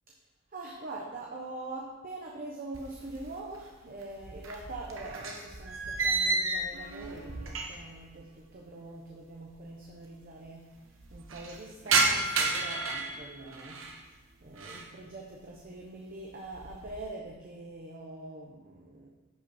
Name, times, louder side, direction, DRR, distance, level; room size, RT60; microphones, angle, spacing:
voice 1, 0.5-10.8 11.1-19.1, right 2 dB, 45° right, -1 dB, 1.0 m, -43 dB
sound 1, 2.7-3.6 3.9-8.0 8.3-8.4 9.2-9.3 9.5-9.6 9.9-10.4 10.8-14.0 14.4-14.9 15.4-15.8 16.2-17.1, right 3 dB, 70° right, 1.2 m, -32 dB
10.5 x 5.8 x 4.3 m, 1.2 s
head